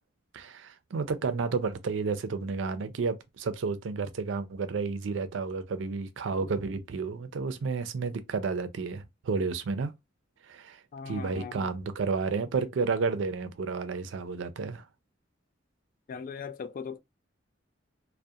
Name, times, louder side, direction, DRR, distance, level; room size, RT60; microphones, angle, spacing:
voice 1, 0.3-9.9 10.5-10.8 11.1-14.8, right 4 dB, 70° right, 0.4 m, -31 dB
voice 2, 10.9-11.7 16.1-17.0, left 6 dB, 45° left, 0.3 m, -39 dB
2.6 x 2.1 x 2.3 m
head